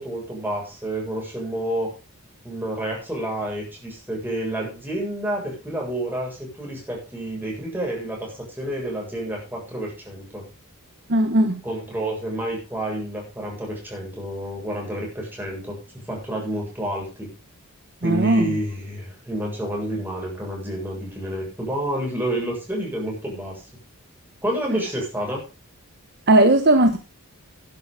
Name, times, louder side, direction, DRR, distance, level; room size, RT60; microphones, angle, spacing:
voice 1, 0.0-1.9 2.4-10.4 11.6-15.8 16.1-17.3 18.0-23.6 24.4-25.4, right 1 dB, 10° right, -2 dB, 7.7 m, -29 dB
voice 2, 11.1-11.6 18.0-18.5 26.3-27.0, right 1 dB, 50° right, 7 dB, 1.4 m, -17 dB
11.5 x 11.5 x 5.1 m, 0.32 s
head